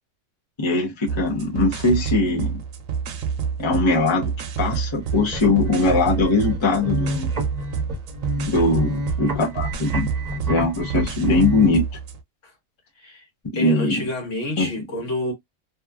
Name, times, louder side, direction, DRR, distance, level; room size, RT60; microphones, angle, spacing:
voice 1, 0.6-2.6 3.6-4.3 4.6-7.3 8.5-11.8 13.5-14.0 14.6-14.7, left 2 dB, 30° left, 0.6 m, -21 dB
sound 1, 1.1-12.2, right 6 dB, 85° right, 1.0 m, -28 dB
sound 2, 5.0-11.7, equal, 35° right, 0.9 m, -31 dB
voice 2, 13.5-15.3, left 1 dB, 70° left, 1.4 m, -29 dB
2.9 x 2.2 x 2.2 m
omnidirectional pair, 1.3 m